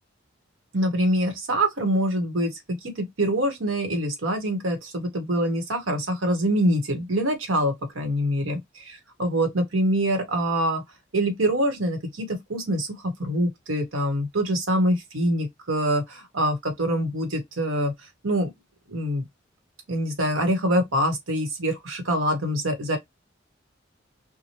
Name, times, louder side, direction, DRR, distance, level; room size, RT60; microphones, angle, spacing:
voice 1, 0.7-8.6 8.9-10.8 11.1-17.9 18.2-18.5 18.9-19.2 19.9-23.0, right 1 dB, 85° right, 1.0 m, -25 dB
2.8 x 2.1 x 2.9 m
head